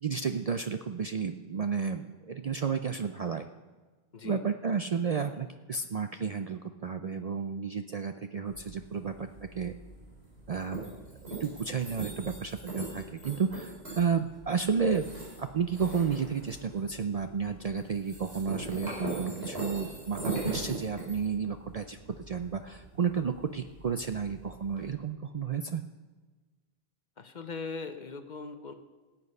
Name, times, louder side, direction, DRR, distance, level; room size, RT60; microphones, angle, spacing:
voice 1, 0.0-3.5 4.2-9.7 10.5-15.1 15.4-25.8, right 6 dB, 50° right, 8 dB, 0.5 m, -32 dB
sound 1, 8.4-24.9, right 2 dB, 70° right, 4.9 m, -41 dB
voice 2, 27.2-28.7, left 4 dB, 50° left, 9 dB, 0.9 m, -40 dB
18.5 x 8.4 x 5.5 m, 1.3 s
omnidirectional pair, 1.1 m